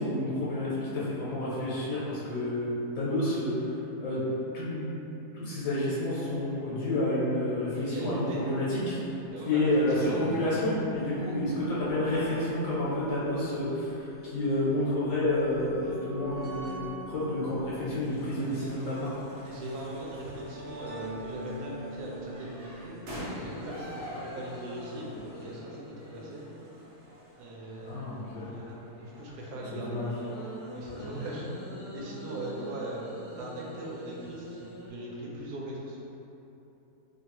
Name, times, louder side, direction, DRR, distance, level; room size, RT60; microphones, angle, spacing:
voice 1, 0.0-3.5 4.0-4.2 4.5-4.9 5.3-9.0 9.5-19.2 27.8-28.4 29.7-30.1, left 1 dB, 90° left, -9 dB, 1.3 m, -29 dB
sound 1, 7.7-7.8 8.0-8.1 8.9-24.2 25.1-25.2 25.4-25.5, right 1 dB, 40° right, 0.4 m, -45 dB
voice 2, 7.8-8.8 9.3-9.7 10.0-10.6 11.2-11.4 19.4-23.0 23.4-26.4 27.4-28.1 28.5-30.4 30.7-31.5 31.9-36.0, right 1 dB, 75° right, -4 dB, 1.1 m, -40 dB
sound 2, 18.0-31.4, equal, 60° right, 0.8 m, -47 dB
sound 3, 23.2-26.9 29.5-34.9, equal, 70° left, 0.7 m, -45 dB
3.2 x 2.2 x 2.9 m, 2.9 s
omnidirectional pair, 1.7 m